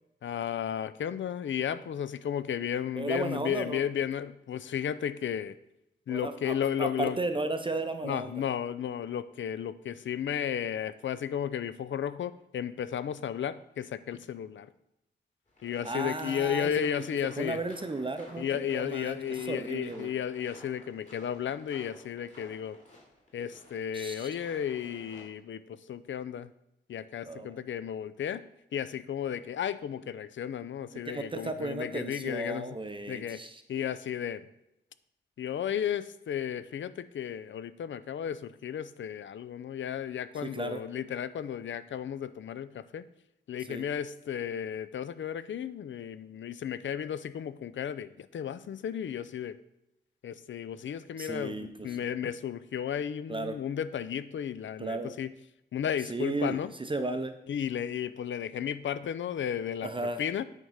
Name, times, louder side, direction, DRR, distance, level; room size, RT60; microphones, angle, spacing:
voice 1, 0.2-5.6 6.1-7.2 8.0-14.7 15.6-17.6 18.4-22.8 23.3-26.5 26.9-28.4 28.7-32.7 33.1-33.4 33.7-34.4 35.4-43.1 43.5-49.6 50.2-55.3 55.7-56.7 57.5-59.9 60.2-60.4, left 9 dB, 80° left, 15 dB, 0.4 m, -34 dB
voice 2, 2.9-3.8 6.1-8.4 15.8-17.1 17.4-20.1 23.9-24.4 27.2-27.6 30.9-33.6 40.4-40.8 43.6-43.8 51.2-52.0 53.3-53.6 54.8-55.1 56.0-57.3 59.8-60.2, right 2 dB, 25° right, 8 dB, 0.5 m, -35 dB
sound 1, 15.5-25.2, left 1 dB, 40° left, 2.8 m, -54 dB
9.1 x 3.6 x 5.6 m, 0.85 s
wide cardioid pair, 105°, 19 cm